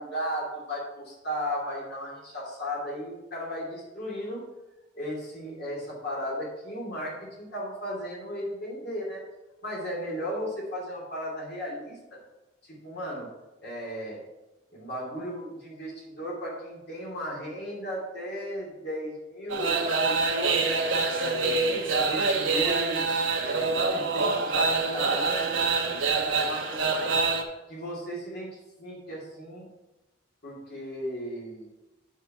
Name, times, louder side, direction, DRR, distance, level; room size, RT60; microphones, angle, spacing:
voice 1, 0.0-4.4 4.9-9.2 9.6-12.2 12.6-13.3 13.6-14.2 14.7-20.7 21.1-25.6 25.9-27.1 27.7-28.5 28.8-29.7 30.4-31.7, equal, 55° left, -3 dB, 2.8 m, -35 dB
sound 1, 19.5-27.4, right 4 dB, 80° right, 1.2 m, -26 dB
9.1 x 4.8 x 5.6 m, 1.1 s
head